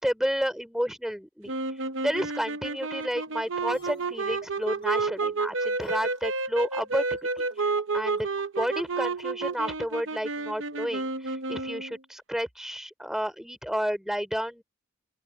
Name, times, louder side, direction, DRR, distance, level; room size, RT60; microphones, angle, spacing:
voice 1, 0.0-8.3 8.5-14.6, equal, ahead, 3.0 m, -31 dB
sound 1, 1.5-12.0, right 3 dB, 70° right, 0.9 m, -31 dB
sound 2, 3.0-9.2, left 4 dB, 25° left, 3.1 m, -50 dB
open air
head